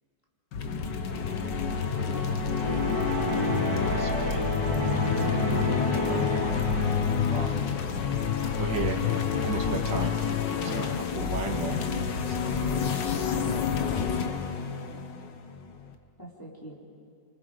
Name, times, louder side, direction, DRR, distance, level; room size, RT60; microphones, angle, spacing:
sound 1, 0.5-15.9, left 6 dB, 75° left, 1.8 m, -28 dB
voice 1, 0.8-2.9 8.2-8.3 16.2-16.8, equal, 10° left, -4 dB, 3.7 m, -45 dB
sound 2, 2.5-7.1, equal, 10° right, 5.3 m, -30 dB
voice 2, 3.3-3.6 3.9-4.8 6.0-7.0 7.3-7.5 8.6-9.1 9.4-10.2 10.6-11.8 12.3-13.9, right 4 dB, 75° right, 2 dB, 2.4 m, -37 dB
28.0 x 25.0 x 5.1 m, 2.4 s
omnidirectional pair, 1.9 m